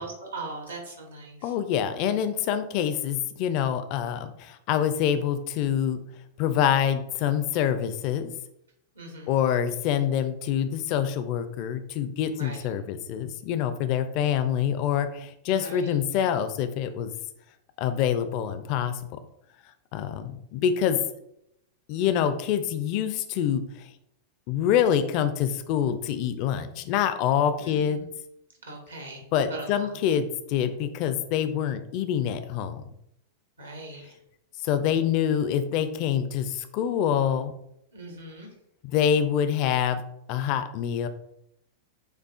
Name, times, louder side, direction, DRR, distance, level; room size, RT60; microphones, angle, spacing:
voice 1, 0.0-1.5 8.9-9.4 12.4-12.6 15.5-15.9 27.6-28.1 28.6-29.2 29.5-30.0 33.6-34.1 37.9-38.5, right 2 dB, 75° right, 0 dB, 1.1 m, -40 dB
voice 2, 1.4-6.0 6.4-8.3 9.3-17.1 17.8-19.2 19.9-21.0 21.9-23.9 24.5-28.0 29.3-32.8 34.6-37.5 38.9-40.0 40.3-41.1, left 9 dB, 45° left, 10 dB, 0.4 m, -26 dB
6.9 x 2.3 x 2.4 m, 0.79 s
figure-of-eight pair, 90°, 0 cm